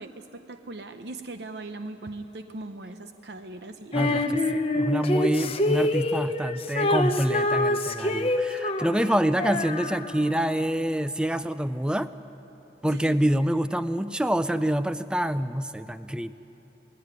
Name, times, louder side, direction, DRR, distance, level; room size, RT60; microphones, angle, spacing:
voice 1, 0.0-4.3 12.9-13.2, right 2 dB, 70° right, 8 dB, 0.8 m, -39 dB
Female singing, 3.9-10.4, left 1 dB, 35° left, 1.0 m, -26 dB
voice 2, 3.9-4.2 4.7-12.1 12.8-16.3, equal, 5° right, 12 dB, 0.4 m, -26 dB
19.5 x 17.5 x 9.7 m, 3.0 s
head